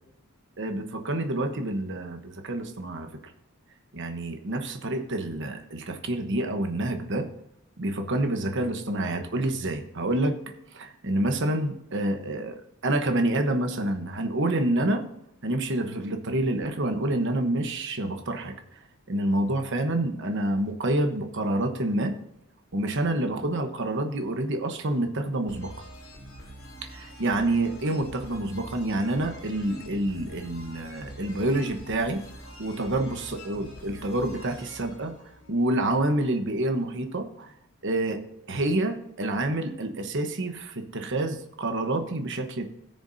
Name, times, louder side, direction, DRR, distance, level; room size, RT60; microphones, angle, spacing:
voice 1, 0.6-3.1 3.9-7.3 7.8-10.4 10.7-12.6 12.8-15.0 15.4-18.8 19.1-22.1 22.7-25.7 26.9-32.2 32.6-35.1 35.5-37.5 37.8-38.2 38.5-42.6, right 1 dB, 55° right, 6 dB, 1.1 m, -28 dB
sound 1, 25.5-36.1, equal, 60° left, 4.1 m, -45 dB
17.0 x 6.8 x 2.7 m, 0.81 s
head